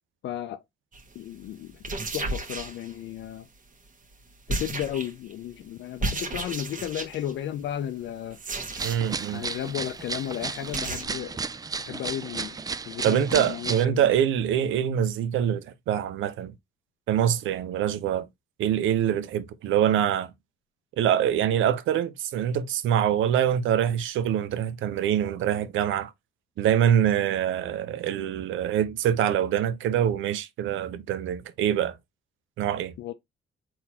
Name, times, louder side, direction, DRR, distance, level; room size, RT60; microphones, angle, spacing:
voice 1, 0.2-0.6 1.1-1.8 2.1-3.5 4.5-8.4 9.3-11.4 11.9-12.6 12.9-14.1 33.0-33.1, left 11 dB, 65° left, 0.5 m, -34 dB
sound 1, 0.9-1.1 1.7-3.3 4.5-5.3 6.0-7.3 8.3-9.2 9.5-9.6 9.9-10.0 10.3-10.4 10.7-11.0, right 2 dB, 40° right, 1.3 m, -33 dB
sound 2, 8.7-13.8, right 4 dB, 20° right, 0.3 m, -34 dB
voice 2, 8.8-9.4 13.0-16.5 17.1-18.2 18.6-20.3 21.0-26.1 26.6-32.0 32.6-32.9, right 10 dB, 80° right, 0.6 m, -24 dB
4.4 x 3.8 x 2.8 m
cardioid pair, 90°, 20 cm